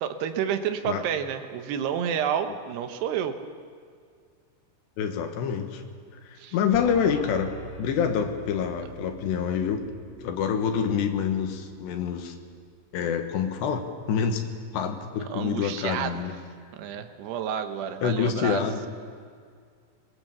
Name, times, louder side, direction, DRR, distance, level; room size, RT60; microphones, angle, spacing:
voice 1, 0.0-3.4 6.4-6.6 15.3-16.3 16.7-18.6, right 8 dB, 75° right, 8 dB, 3.1 m, -30 dB
voice 2, 5.0-5.8 6.2-7.5 7.8-9.8 10.2-12.4 12.9-14.4 14.7-16.3 18.0-18.9, left 7 dB, 85° left, 5 dB, 3.6 m, -27 dB
sound 1, 6.7-12.2, right 1 dB, 35° left, 2.0 m, -45 dB
22.0 x 22.0 x 7.3 m, 2.1 s
omnidirectional pair, 4.9 m